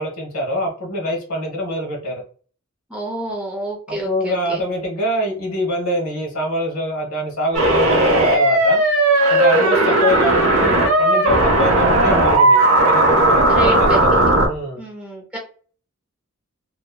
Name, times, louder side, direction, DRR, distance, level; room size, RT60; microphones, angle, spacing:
voice 1, 0.0-2.2 3.9-8.8 9.3-14.8, equal, 75° left, 0 dB, 1.2 m, -24 dB
voice 2, 2.9-4.6 9.8-10.1 13.5-14.3 14.8-15.4, right 1 dB, 5° right, -2 dB, 0.6 m, -28 dB
sound 1, 7.5-14.5, right 1 dB, 75° right, 0.8 m, -15 dB
2.9 x 2.1 x 2.2 m, 0.41 s
head